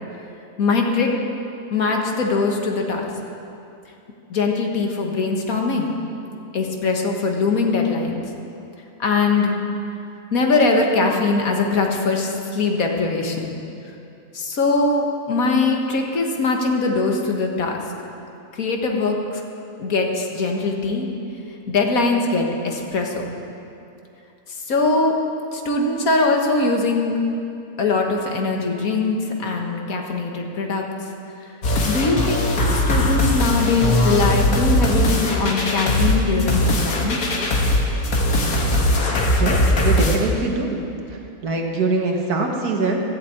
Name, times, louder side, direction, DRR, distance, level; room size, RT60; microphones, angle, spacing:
voice 1, 0.6-1.1 1.7-3.1 4.3-6.0 6.5-8.2 9.0-9.5 10.3-13.5 14.3-17.8 18.5-19.4 19.8-21.1 21.7-23.2 24.5-25.1 25.5-27.2 27.8-30.8 31.9-37.2, left 3 dB, 65° left, 1 dB, 1.8 m, -21 dB
sound 1, 31.6-40.2, left 1 dB, 85° left, 2.1 m, -20 dB
voice 2, 39.3-40.8 41.4-43.0, right 3 dB, 80° right, 2 dB, 1.9 m, -23 dB
14.0 x 7.6 x 8.6 m, 2.7 s
omnidirectional pair, 1.6 m